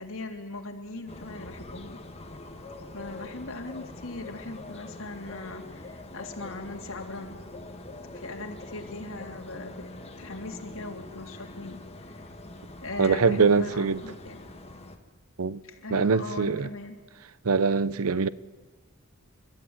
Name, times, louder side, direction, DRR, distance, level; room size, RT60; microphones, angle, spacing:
voice 1, 0.0-2.0 2.9-7.4 8.1-9.9 10.2-12.2 12.8-14.4 15.6-17.0, left 2 dB, 65° left, 3.4 m, -39 dB
sound 1, 1.1-15.0, left 2 dB, 30° left, 1.8 m, -44 dB
voice 2, 13.0-14.0 15.4-15.6 15.9-16.7 17.4-18.3, right 5 dB, 80° right, 0.8 m, -23 dB
30.0 x 14.0 x 9.7 m
head